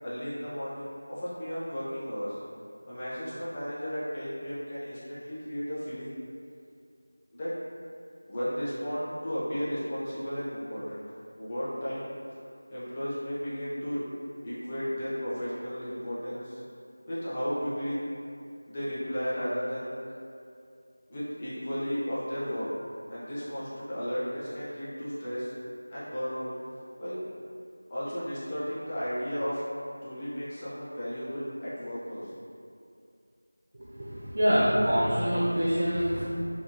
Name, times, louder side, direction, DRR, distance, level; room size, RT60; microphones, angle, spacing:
voice 1, 0.0-2.4 2.8-6.2 7.3-7.5 8.3-11.0 11.4-12.1 12.7-14.1 14.4-16.6 17.1-18.0 18.7-20.0 21.1-22.7 23.1-25.5 25.9-26.5 27.0-27.2 27.9-29.6 30.0-32.3, equal, 15° left, -11 dB, 0.4 m, -34 dB
voice 2, 33.7-36.4, equal, 45° right, -8 dB, 0.5 m, -26 dB
2.7 x 2.3 x 2.5 m, 2.5 s
figure-of-eight pair, 175°, 0 cm